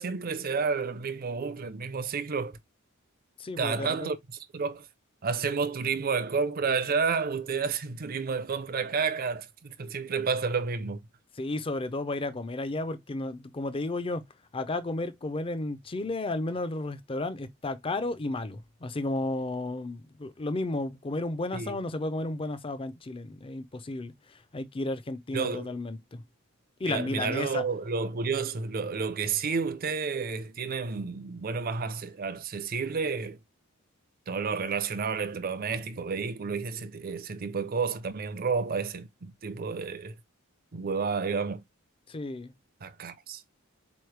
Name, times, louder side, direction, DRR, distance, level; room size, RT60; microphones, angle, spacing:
voice 1, 0.0-2.6 3.6-4.2 4.5-4.9 5.2-11.0 21.5-21.8 25.3-25.7 26.8-33.4 34.3-40.1 40.7-41.6 42.8-43.4, right 5 dB, 45° right, 0.5 m, -30 dB
voice 2, 3.4-4.1 11.4-14.2 14.5-26.2 26.8-27.6 42.1-42.5, left 2 dB, 25° left, 0.5 m, -33 dB
4.2 x 3.1 x 3.2 m
head